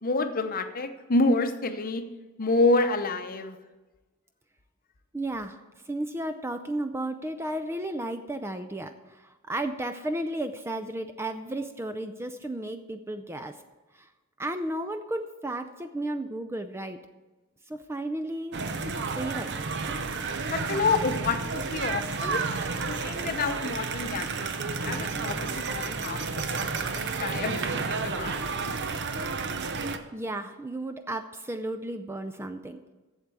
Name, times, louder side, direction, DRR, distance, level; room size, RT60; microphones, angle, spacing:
voice 1, 0.0-2.0 2.4-3.6 20.5-22.4 22.9-24.4 24.8-28.8, left 3 dB, 40° left, 8 dB, 0.8 m, -28 dB
voice 2, 5.1-5.6 5.9-13.6 13.9-14.1 14.4-17.0 17.7-18.6 18.8-19.6 30.1-32.8, right 1 dB, 10° right, 8 dB, 0.4 m, -33 dB
sound 1, 18.5-30.0, right 4 dB, 50° right, 0.8 m, -31 dB
8.0 x 7.4 x 8.2 m, 1.2 s
head